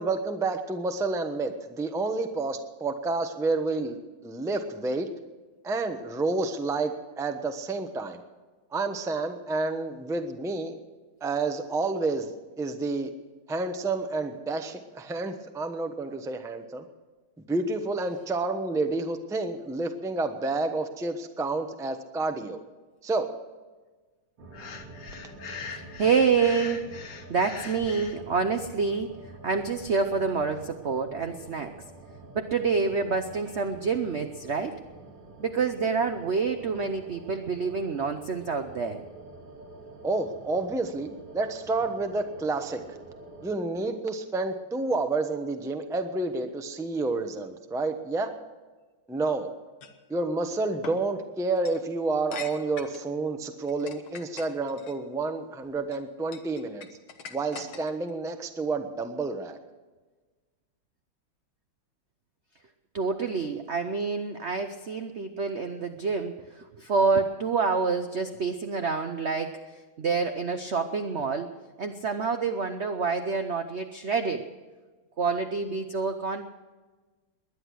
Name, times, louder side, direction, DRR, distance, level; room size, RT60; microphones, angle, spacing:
voice 1, 0.0-4.0 4.2-5.1 5.6-8.2 8.7-10.7 11.2-13.1 13.5-16.8 17.5-22.6 23.0-23.3 40.0-43.0 43.4-48.3 49.1-49.5 50.1-56.9 57.3-59.6, right 3 dB, 5° right, 6 dB, 0.4 m, -29 dB
sound 1, 24.4-43.5, right 2 dB, 85° right, 3.4 m, -47 dB
Breathing, 24.5-28.2, left 5 dB, 50° left, 1.3 m, -41 dB
voice 2, 25.7-26.9 27.3-29.1 29.4-31.8 32.3-34.8 35.4-39.0 62.9-69.6 70.0-71.5 71.8-74.5 75.2-76.4, right 5 dB, 70° right, 7 dB, 0.6 m, -27 dB
sound 2, 49.8-50.0 50.8-51.0 51.6-51.8 52.3-53.1 53.6-54.9 55.6-56.0 56.3-58.1, left 6 dB, 75° left, 2.1 m, -42 dB
20.5 x 10.5 x 6.3 m, 1.3 s
omnidirectional pair, 2.3 m